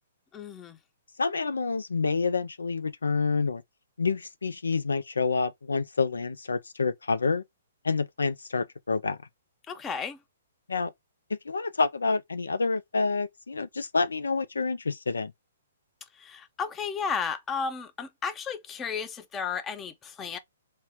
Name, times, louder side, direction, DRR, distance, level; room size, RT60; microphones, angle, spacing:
voice 1, 0.3-0.8 9.7-10.2 16.1-20.4, left 6 dB, 20° left, 0.6 m, -33 dB
voice 2, 1.2-3.6 4.0-7.4 7.8-9.2 10.7-10.9 11.5-15.3, left 4 dB, 80° left, 0.3 m, -28 dB
4.3 x 2.1 x 4.3 m
figure-of-eight pair, 125°, 0 cm